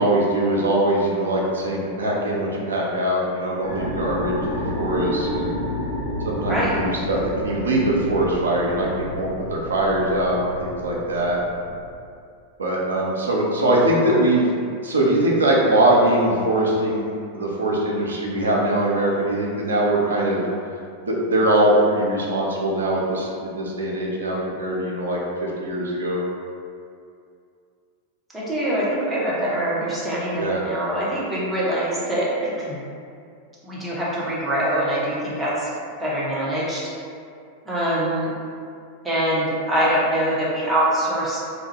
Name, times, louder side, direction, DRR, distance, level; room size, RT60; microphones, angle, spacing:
voice 1, 0.0-5.5 6.2-11.4 12.6-14.5 14.8-17.1 17.3-20.4 21.0-26.2 30.4-30.6, right 1 dB, 70° right, -3 dB, 0.4 m, -22 dB
sound 1, 3.6-11.9, left 1 dB, 55° left, 0.7 m, -31 dB
voice 2, 28.3-32.8 33.6-35.7 36.0-36.9 37.6-38.3 39.0-41.4, right 1 dB, 10° right, -8 dB, 0.7 m, -24 dB
2.3 x 2.0 x 2.9 m, 2.4 s
figure-of-eight pair, 90°, 0 cm